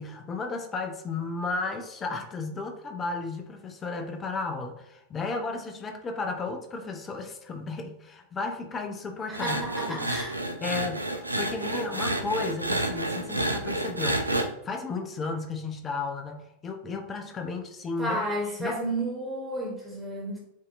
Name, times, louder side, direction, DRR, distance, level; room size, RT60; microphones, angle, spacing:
voice 1, 0.0-9.6 9.9-10.0 10.6-14.3 14.6-18.2 18.6-18.8, left 3 dB, 20° left, 5 dB, 0.6 m, -34 dB
voice 2, 9.3-10.3 18.0-20.4, right 1 dB, ahead, -5 dB, 1.5 m, -32 dB
sound 1, 9.3-14.5, right 1 dB, 85° right, 0.4 m, -30 dB
7.2 x 2.7 x 2.5 m, 0.79 s
figure-of-eight pair, 90°, 0 cm